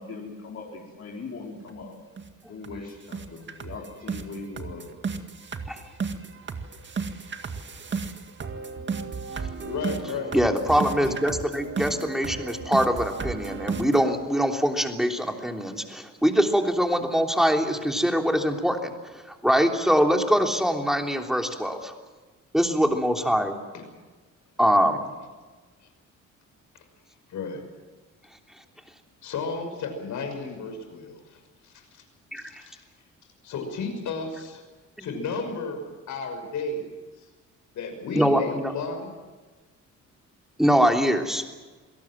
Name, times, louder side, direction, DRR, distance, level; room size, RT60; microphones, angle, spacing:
voice 1, 0.0-1.9 2.5-5.1, left 3 dB, 50° left, -2 dB, 4.8 m, -40 dB
sound 1, 1.7-1.8 2.2-2.3 2.6-2.8 3.1-14.1, right 5 dB, 40° right, 2.0 m, -34 dB
voice 2, 9.6-10.4 11.0-11.1 23.7-23.8 27.3-27.6 29.2-32.0 32.4-32.8 33.4-34.6 35.0-36.8 37.2-37.3 37.7-39.1, left 4 dB, 75° left, 5 dB, 6.1 m, -33 dB
voice 3, 10.3-21.9 22.5-23.5 24.6-25.0 32.3-32.6 35.0-35.1 38.2-38.7 40.6-41.4, equal, ahead, 3 dB, 3.3 m, -23 dB
27.0 x 18.5 x 7.7 m, 1.3 s
cardioid pair, 90°, 30 cm